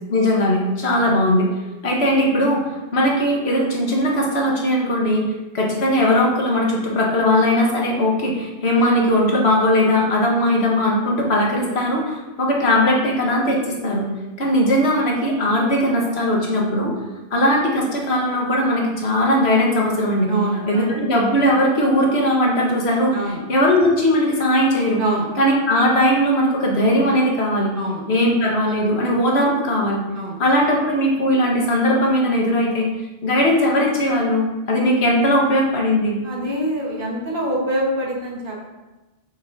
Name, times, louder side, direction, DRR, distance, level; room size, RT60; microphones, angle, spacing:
voice 1, 0.1-1.5 1.8-2.6 2.9-5.2 5.5-14.1 14.4-16.9 17.3-20.3 20.7-23.1 23.5-25.0 25.4-27.7 28.1-30.0 30.4-32.9 33.2-36.2, left 1 dB, 85° left, -1 dB, 1.4 m, -19 dB
voice 2, 20.3-21.0 23.1-23.4 25.0-25.3 27.7-28.0 30.1-30.4 36.2-38.6, right 1 dB, 55° right, -3 dB, 1.5 m, -25 dB
6.4 x 6.0 x 2.6 m, 1.1 s
omnidirectional pair, 1.1 m